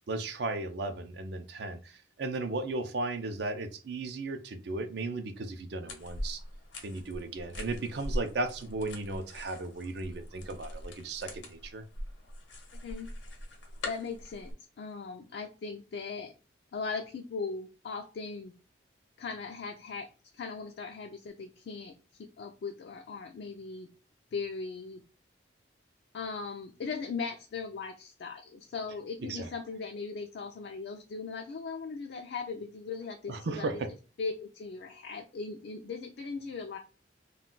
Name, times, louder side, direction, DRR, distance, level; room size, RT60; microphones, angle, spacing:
voice 1, 0.1-6.4 6.8-11.8 29.3-29.5 33.3-33.9, right 2 dB, 60° right, 0.4 m, -35 dB
sound 1, 5.9-14.5, left 1 dB, 80° left, 0.7 m, -41 dB
voice 2, 13.8-16.3 16.7-18.5 19.2-20.1 20.3-23.9 24.3-25.0 26.1-33.8 34.2-36.8, left 4 dB, 60° left, 0.3 m, -39 dB
2.3 x 2.2 x 3.7 m
head